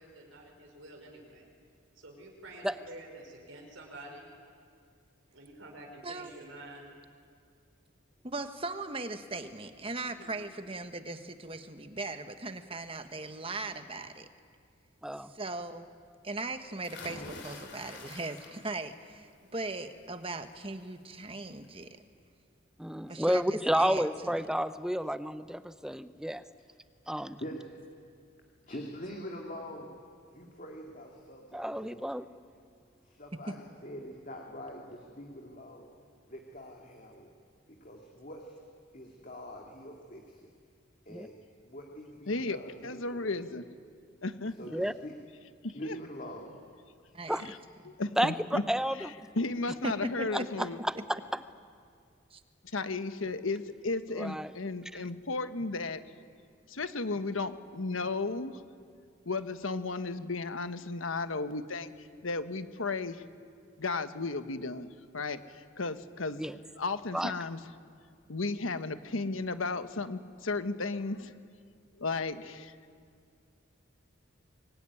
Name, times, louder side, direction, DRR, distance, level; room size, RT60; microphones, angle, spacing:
voice 1, 0.0-1.4 2.0-4.3 5.3-6.9 10.1-10.4, right 1 dB, 75° right, 1 dB, 5.0 m, -49 dB
voice 2, 6.0-6.3 8.2-14.3 15.2-15.9 16.2-19.3 19.5-22.0 23.1-24.5 33.5-33.6 47.1-47.5 49.8-50.7 50.9-51.0 52.3-52.4, right 2 dB, 25° right, 8 dB, 1.4 m, -39 dB
sound 1, 16.8-18.9 19.3-19.8 21.1-21.2 21.6-21.7, left 3 dB, 60° left, 3.8 m, -46 dB
voice 3, 22.8-26.4 27.1-27.4 31.5-32.2 41.1-41.3 44.7-44.9 47.3-47.5 48.2-49.1 51.1-51.2 54.2-54.5 66.4-66.6 67.1-67.3, equal, 5° right, 12 dB, 0.7 m, -30 dB
voice 4, 27.4-27.7 28.7-29.9 30.3-32.0 33.0-35.9 36.3-37.3 37.7-38.6 38.9-40.5 41.1-41.4 41.6-43.4 44.6-45.1 45.7-46.6, equal, 40° left, 1 dB, 2.4 m, -44 dB
voice 5, 42.3-42.6 42.8-43.6 44.2-44.5 45.6-46.0 47.4-47.6 47.8-48.6 49.0-50.8 52.7-56.0 56.7-58.5 59.2-63.2 63.8-66.4 66.8-67.6 68.3-71.3 72.0-72.7, left 3 dB, 80° left, 10 dB, 1.3 m, -34 dB
25.0 x 22.0 x 9.9 m, 2.2 s
head